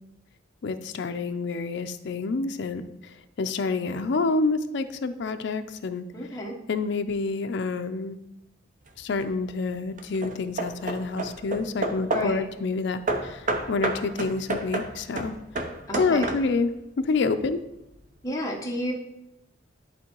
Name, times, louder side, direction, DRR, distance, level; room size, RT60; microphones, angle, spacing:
voice 1, 0.6-6.1 6.7-8.2 9.0-15.4 16.0-16.7 17.0-17.6, left 3 dB, 60° left, 8 dB, 0.4 m, -28 dB
voice 2, 6.1-6.5 12.1-12.4 15.9-16.3 18.2-18.9, equal, 15° left, -1 dB, 1.0 m, -30 dB
Hammer / Wood, 8.9-9.3 10.0-12.4 13.1-16.7, right 2 dB, 40° right, 0.6 m, -31 dB
11.0 x 3.7 x 3.0 m, 0.87 s
head